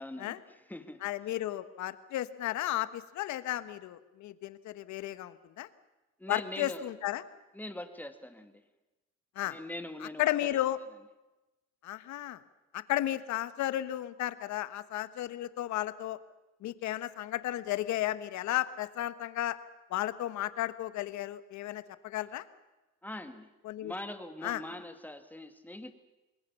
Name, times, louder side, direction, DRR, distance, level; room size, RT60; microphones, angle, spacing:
voice 1, 0.0-1.0 6.2-6.9 7.5-8.6 9.5-10.6 23.0-23.5 23.8-25.9, left 1 dB, 5° left, 8 dB, 2.1 m, -42 dB
voice 2, 1.0-5.7 6.3-7.2 9.3-9.6 10.2-10.8 11.8-12.4 12.7-16.2 16.6-19.6 19.9-22.4 23.6-23.9 24.4-24.6, left 14 dB, 70° left, 13 dB, 1.4 m, -33 dB
27.5 x 21.0 x 7.1 m, 1.1 s
cardioid pair, 125°, 30 cm